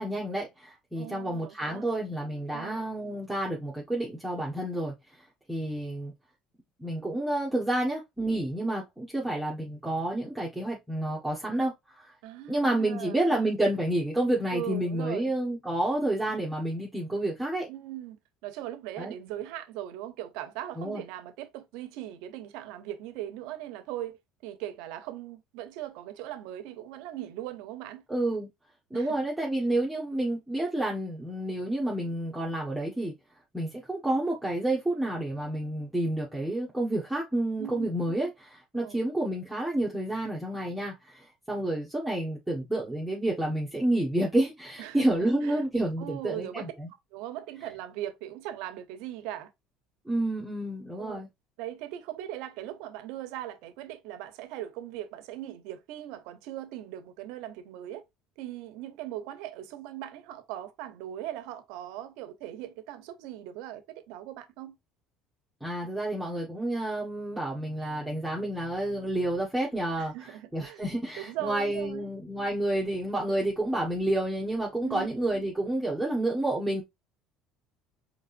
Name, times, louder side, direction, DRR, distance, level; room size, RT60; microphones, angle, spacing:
voice 1, 0.0-4.9 5.5-6.1 6.8-12.1 12.5-17.7 19.0-19.1 20.8-21.0 28.1-28.5 28.9-33.1 33.5-46.9 50.0-51.3 65.6-70.1 70.5-76.8, right 1 dB, 5° right, 1.7 m, -29 dB
voice 2, 1.0-1.9 2.5-2.8 12.2-13.4 14.5-15.3 17.7-28.0 28.9-29.2 37.6-37.9 38.8-39.0 44.8-45.6 46.0-46.7 47.1-49.5 50.9-51.2 51.6-58.0 58.4-64.8 70.0-70.8 71.2-72.1 74.8-75.1, right 13 dB, 80° right, 1.0 m, -39 dB
5.2 x 3.8 x 2.6 m
cardioid pair, 130°, 0 cm